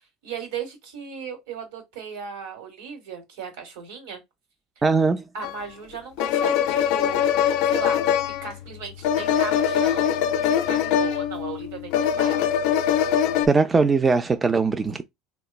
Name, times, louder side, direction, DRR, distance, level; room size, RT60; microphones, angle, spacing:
voice 1, 0.2-4.2 5.3-7.3 7.6-8.0 8.4-12.4, right 6 dB, 80° right, 1.2 m, -36 dB
voice 2, 4.8-5.2 13.5-15.0, right 4 dB, 20° right, 0.4 m, -20 dB
sound 1, 5.4-5.5 6.2-13.5, left 9 dB, 70° left, 0.3 m, -22 dB
3.0 x 2.1 x 2.3 m
supercardioid pair, 95°, 0 cm